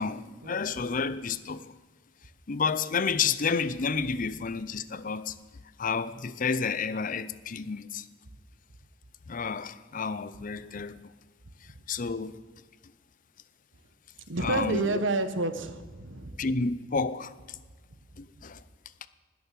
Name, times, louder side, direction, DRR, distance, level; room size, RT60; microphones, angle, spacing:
voice 1, 0.0-1.8 2.5-5.4 5.8-8.1 9.3-11.1 11.6-12.4 14.4-15.0 16.4-17.6 18.2-18.6, left 5 dB, 45° left, 0.6 m, -30 dB
voice 2, 14.3-16.4, right 2 dB, 80° right, 1.2 m, -29 dB
20.0 x 7.0 x 6.8 m
head